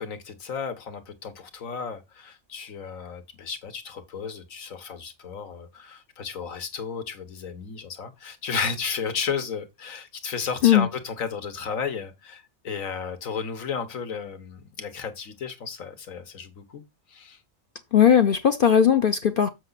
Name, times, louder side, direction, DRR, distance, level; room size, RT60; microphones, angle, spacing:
voice 1, 0.0-16.8 17.1-17.4, left 6 dB, 70° left, 1.7 m, -33 dB
voice 2, 17.9-19.5, left 8 dB, 50° left, 0.7 m, -18 dB
7.5 x 5.9 x 4.0 m
omnidirectional pair, 1.5 m